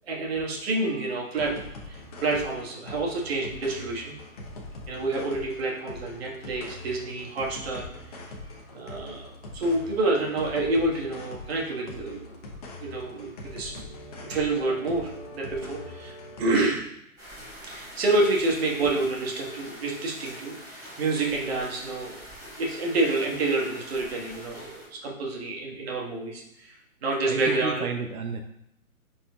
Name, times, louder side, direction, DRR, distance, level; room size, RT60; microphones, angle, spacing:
voice 1, 0.1-4.1 4.9-8.2 8.7-12.5 12.8-13.7 14.2-16.9 17.6-22.2 22.4-26.7 27.0-27.9, right 2 dB, 45° right, -1 dB, 1.6 m, -28 dB
sound 1, 0.8-16.4, left 1 dB, 30° left, 0.9 m, -42 dB
sound 2, 17.2-24.9, equal, 10° right, 1.7 m, -44 dB
voice 2, 27.1-28.4, right 5 dB, 90° right, 5 dB, 0.8 m, -32 dB
9.8 x 4.4 x 2.3 m, 0.77 s
hypercardioid pair, 155°, 42 cm